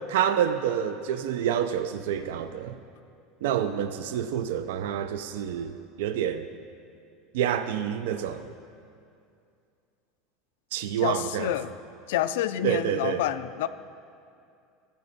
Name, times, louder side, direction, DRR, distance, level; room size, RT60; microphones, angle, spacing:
voice 1, 0.1-2.8 3.4-6.5 7.3-8.5 10.7-11.5 12.6-13.2, right 9 dB, 85° right, 10 dB, 0.4 m, -28 dB
voice 2, 11.0-11.8 12.1-13.7, left 12 dB, 85° left, 13 dB, 0.3 m, -28 dB
15.0 x 5.8 x 4.0 m, 2.4 s
supercardioid pair, 155°, 0 cm